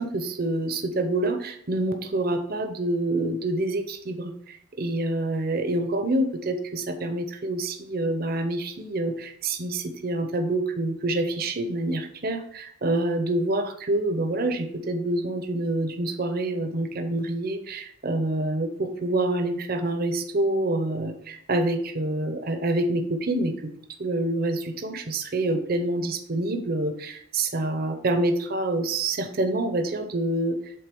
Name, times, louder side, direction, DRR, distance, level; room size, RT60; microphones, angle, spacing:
voice 1, 0.0-23.5 24.0-30.7, right 2 dB, 45° right, 7 dB, 0.8 m, -27 dB
7.8 x 3.9 x 5.3 m, 0.70 s
head